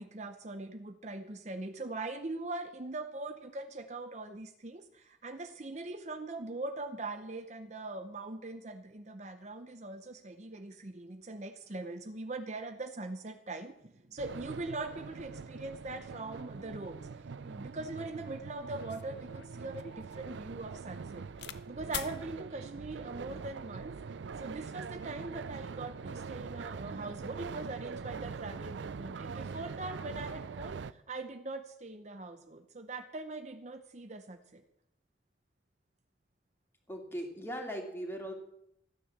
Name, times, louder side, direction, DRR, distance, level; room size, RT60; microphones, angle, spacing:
voice 1, 0.0-24.0 24.4-34.6, right 2 dB, 40° right, 7 dB, 0.7 m, -42 dB
sound 1, 14.2-30.9, right 5 dB, 80° right, 0.4 m, -43 dB
sound 2, 18.2-18.3 18.8-21.6 21.9-22.2 23.0-23.4, left 10 dB, 70° left, 0.8 m, -45 dB
voice 2, 36.9-38.3, equal, 15° left, 1 dB, 2.6 m, -39 dB
14.5 x 9.9 x 7.3 m, 0.79 s
head